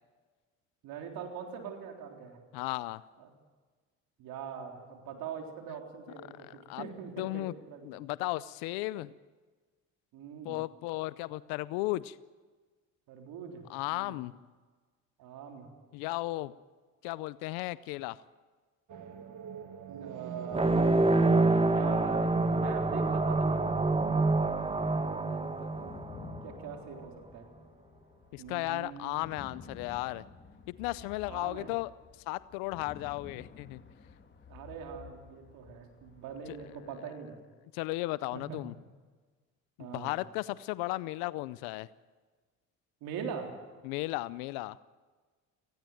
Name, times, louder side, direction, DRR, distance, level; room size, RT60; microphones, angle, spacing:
voice 1, 0.8-2.4 3.2-3.3 4.2-7.9 10.1-10.6 13.1-14.2 15.2-15.7 20.0-21.1 21.7-26.0 26.4-27.5 28.4-29.2 31.3-31.7 34.5-37.4 38.3-38.6 39.8-40.1 43.0-43.5, right 7 dB, 75° right, 3 dB, 3.8 m, -43 dB
voice 2, 2.5-3.0 6.4-6.8 7.2-7.5 7.8-9.1 10.4-12.2 13.7-14.3 15.9-16.5 17.0-18.2 28.3-30.2 30.7-31.9 32.3-33.8 36.5-36.7 37.7-38.7 39.8-41.9 43.8-44.8, left 19 dB, 85° left, 18 dB, 0.6 m, -35 dB
sound 1, 18.9-26.9, right 8 dB, 55° right, 1.7 m, -44 dB
sound 2, 20.5-26.7, right 2 dB, 15° right, 1.2 m, -27 dB
sound 3, 25.6-37.0, left 5 dB, 30° left, 2.5 m, -52 dB
18.0 x 16.5 x 9.1 m, 1.4 s
supercardioid pair, 80°, 36 cm